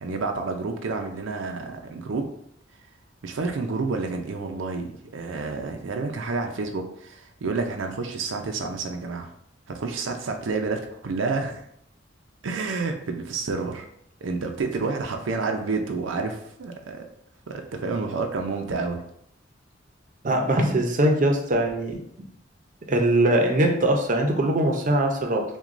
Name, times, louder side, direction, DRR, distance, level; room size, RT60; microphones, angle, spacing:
voice 1, 0.0-2.3 3.2-9.3 9.7-11.6 12.4-13.9 14.2-17.0 17.5-19.0, right 4 dB, 90° right, 4 dB, 0.5 m, -29 dB
voice 2, 20.2-22.0 22.9-25.4, right 1 dB, 45° right, 3 dB, 0.6 m, -21 dB
6.0 x 2.2 x 2.5 m, 0.71 s
head